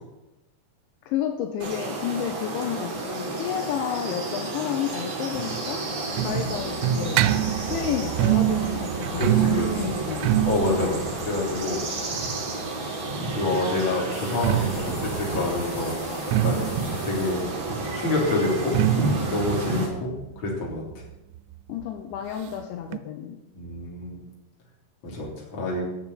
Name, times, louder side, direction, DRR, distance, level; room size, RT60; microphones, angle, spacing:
voice 1, 1.1-5.8 6.2-7.3 7.7-10.5 21.7-23.4, left 9 dB, 80° left, 5 dB, 3.1 m, -31 dB
sound 1, 1.6-19.9, right 2 dB, 40° right, 3.2 m, -31 dB
sound 2, 5.3-13.0 14.2-21.5 21.8-21.9 22.2-22.3 22.9-23.0, right 13 dB, 90° right, 3.0 m, -27 dB
voice 2, 9.1-9.8 10.5-11.8 13.3-16.1 16.4-16.7 17.0-17.4 17.9-18.8 19.3-20.8 23.5-24.2 25.0-25.8, left 2 dB, 30° left, -3 dB, 3.5 m, -27 dB
sound 3, 14.1-19.0, left 4 dB, 60° left, 4.4 m, -45 dB
10.0 x 7.2 x 9.0 m, 0.96 s
omnidirectional pair, 5.5 m